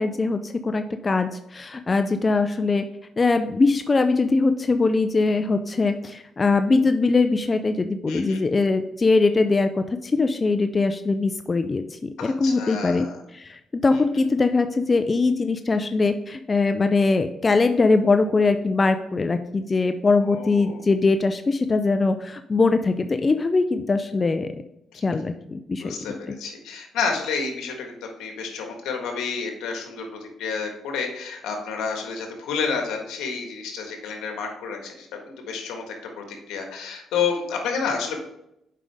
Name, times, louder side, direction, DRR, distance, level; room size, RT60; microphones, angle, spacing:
voice 1, 0.0-2.8 3.2-24.5 24.9-25.9 26.3-26.4, left 3 dB, 30° left, 8 dB, 0.4 m, -22 dB
voice 2, 8.1-8.4 12.2-13.2 20.3-20.8 24.9-25.0 25.8-38.2, left 5 dB, 85° left, 3 dB, 1.6 m, -30 dB
7.5 x 5.2 x 3.5 m, 0.81 s
cardioid pair, 90°, 0 cm